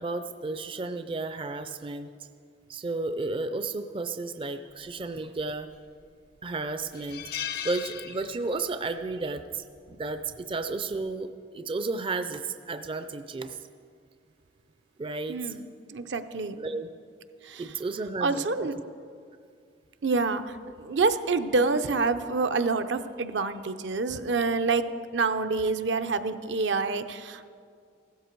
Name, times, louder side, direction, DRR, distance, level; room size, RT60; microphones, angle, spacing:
voice 1, 0.0-2.1 2.7-5.7 6.4-7.3 7.6-13.7 15.0-15.6 16.6-16.9 17.6-18.7, right 3 dB, 30° right, 9 dB, 0.4 m, -33 dB
sound 1, 5.5-6.0 6.4-6.5 6.9-8.7 9.0-9.3 10.5-10.8, left 10 dB, 55° left, 0.6 m, -37 dB
voice 2, 15.3-16.6 17.4-17.7 18.2-18.8 20.0-24.9 25.1-27.5, right 4 dB, 70° right, 10 dB, 0.6 m, -27 dB
15.0 x 13.0 x 4.6 m, 2.2 s
head